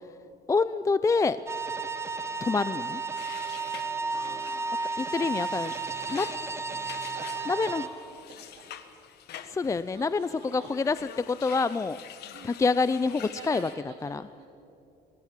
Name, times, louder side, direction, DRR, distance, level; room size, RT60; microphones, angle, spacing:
voice 1, 0.5-1.4 2.4-3.0 5.0-5.7 6.1-6.2 7.5-7.8 9.5-11.0 11.3-12.0 12.4-13.7 14.0-14.2, left 4 dB, 20° left, 15 dB, 0.4 m, -26 dB
sound 1, 1.5-7.9, right 4 dB, 15° right, 1.3 m, -33 dB
sound 2, 3.2-13.8, left 10 dB, 75° left, 1.4 m, -47 dB
voice 2, 4.1-4.7 5.1-5.3 5.6-8.7 9.7-10.7 12.3-12.6 13.1-14.5, right 5 dB, 75° right, -4 dB, 3.3 m, -48 dB
23.5 x 16.5 x 7.5 m, 2.7 s
cardioid pair, 110°, 17 cm